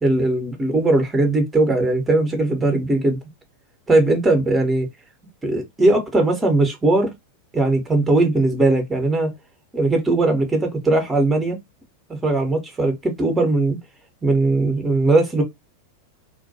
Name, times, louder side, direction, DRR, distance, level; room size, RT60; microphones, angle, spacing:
voice 1, 0.0-3.2 3.9-4.9 5.4-7.1 7.5-9.3 9.7-11.6 12.2-13.8 14.2-15.4, right 2 dB, 10° right, 0.7 m, -19 dB
2.2 x 2.1 x 2.7 m
figure-of-eight pair, 90°, 0 cm